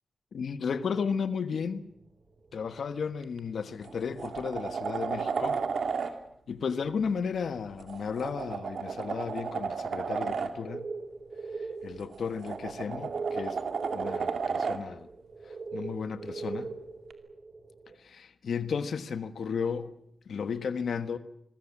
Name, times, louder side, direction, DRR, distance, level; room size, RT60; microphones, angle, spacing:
voice 1, 0.3-1.9 2.5-5.6 6.5-10.9 11.8-13.6 13.9-15.1 15.7-16.7 18.0-19.9 20.3-21.2, left 6 dB, 85° left, 1.3 m, -34 dB
sound 1, 1.6-3.0 4.0-4.1 4.9-5.1 5.6-5.7 5.9-6.0 7.2-7.6 8.1-8.4 8.8-9.1 9.8-10.0 10.3-17.9, right 4 dB, 50° right, 5.5 m, -41 dB
sound 2, 3.2-3.4 3.8-6.1 7.8-10.5 12.0-14.8 17.1-17.2, right 5 dB, 80° right, 2.5 m, -33 dB
27.0 x 22.0 x 7.3 m
wide cardioid pair, 115°, 0 cm